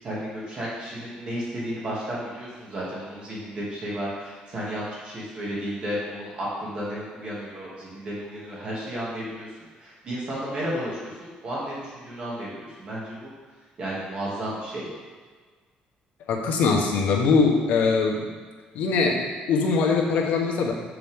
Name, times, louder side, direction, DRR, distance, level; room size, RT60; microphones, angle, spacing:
voice 1, 0.0-9.5 9.8-13.3 13.8-14.9, equal, 35° right, -6 dB, 2.4 m, -33 dB
voice 2, 16.3-18.3 18.7-20.7, left 4 dB, 75° left, 0 dB, 1.3 m, -22 dB
7.7 x 6.5 x 3.7 m, 1.5 s
cardioid pair, 150°, 3 cm